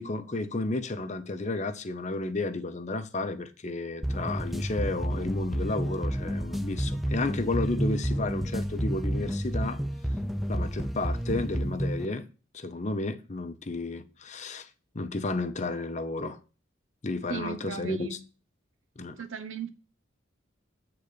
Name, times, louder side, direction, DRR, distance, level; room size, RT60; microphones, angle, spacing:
voice 1, 0.0-9.8 10.5-12.3 12.5-14.7 14.9-16.4 17.0-18.2 19.0-19.2, left 2 dB, 35° left, 0.8 m, -32 dB
sound 1, 4.0-12.1, equal, ahead, 0.4 m, -30 dB
voice 2, 17.3-18.2 19.2-19.7, right 5 dB, 85° right, 1.1 m, -36 dB
8.4 x 3.9 x 6.6 m
head